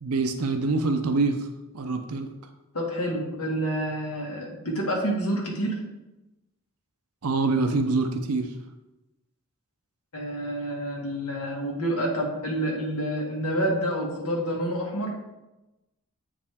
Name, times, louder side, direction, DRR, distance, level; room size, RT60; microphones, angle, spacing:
voice 1, 0.0-1.4 1.7-2.3 7.2-8.5, right 3 dB, 85° right, 6 dB, 0.6 m, -25 dB
voice 2, 2.7-5.8 10.1-15.2, right 1 dB, 85° left, -1 dB, 1.7 m, -28 dB
7.5 x 4.9 x 3.5 m, 1.0 s
head